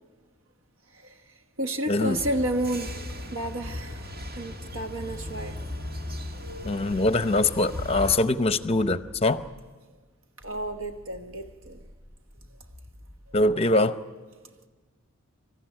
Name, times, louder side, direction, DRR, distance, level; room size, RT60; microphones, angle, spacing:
voice 1, 0.9-5.6 10.4-11.9, right 1 dB, 70° right, 1.1 m, -32 dB
sound 1, 2.1-8.2, left 1 dB, 50° right, 1.8 m, -37 dB
voice 2, 6.6-9.4 13.3-14.0, left 2 dB, 30° left, 0.7 m, -23 dB
sound 2, 10.4-13.7, equal, 20° right, 5.5 m, -51 dB
26.0 x 14.5 x 9.2 m
head